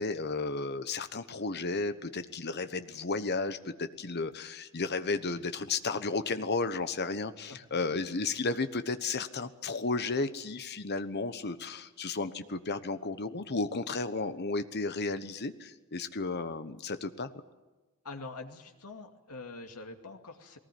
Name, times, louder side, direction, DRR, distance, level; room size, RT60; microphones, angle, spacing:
voice 1, 0.0-17.3, left 3 dB, 50° left, 11 dB, 1.1 m, -33 dB
voice 2, 18.0-20.6, left 3 dB, 90° left, 4 dB, 2.4 m, -44 dB
20.5 x 19.0 x 9.4 m, 1.2 s
head